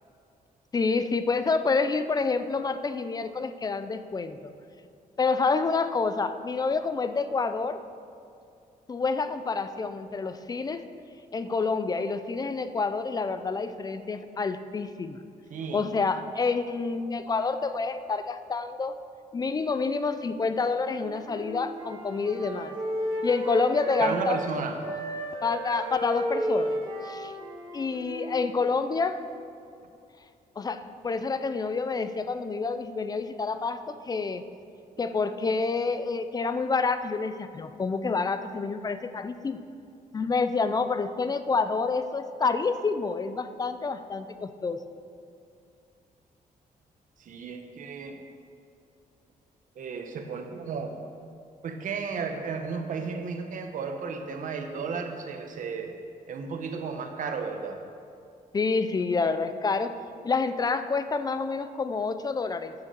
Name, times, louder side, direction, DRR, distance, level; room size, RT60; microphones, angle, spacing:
voice 1, 0.7-4.5 5.2-7.8 8.9-10.8 11.3-15.2 15.7-19.0 19.3-22.8 23.2-24.4 25.4-27.3 27.7-29.2 30.6-34.4 35.0-39.6 40.1-44.8 58.5-60.0 60.2-62.7, left 4 dB, 25° left, 11 dB, 0.5 m, -28 dB
voice 2, 15.5-15.9 24.0-24.8 47.2-48.2 49.8-50.9 51.6-55.9 56.3-57.8, right 5 dB, 60° right, 5 dB, 1.1 m, -34 dB
Wind instrument woodwind instrument, 20.8-24.5 24.8-28.9, right 1 dB, 35° right, 2.1 m, -33 dB
9.7 x 6.7 x 6.8 m, 2.5 s
cardioid pair, 130°, 15 cm